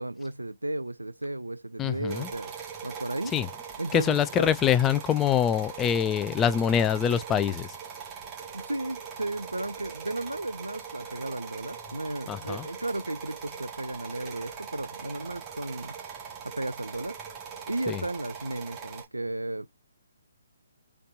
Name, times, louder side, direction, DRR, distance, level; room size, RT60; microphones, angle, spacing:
voice 1, 0.0-2.5 2.8-3.3 3.8-4.5 8.5-15.9 16.6-17.2 17.7-19.7, right 2 dB, 85° right, 0.4 m, -34 dB
voice 2, 1.8-2.3 3.3-3.5 3.9-7.8 12.3-12.7 17.9-18.0, left 9 dB, 15° left, 0.4 m, -25 dB
sound 1, 2.1-19.0, right 6 dB, 20° right, 1.6 m, -41 dB
4.2 x 3.2 x 2.5 m
figure-of-eight pair, 135°, 0 cm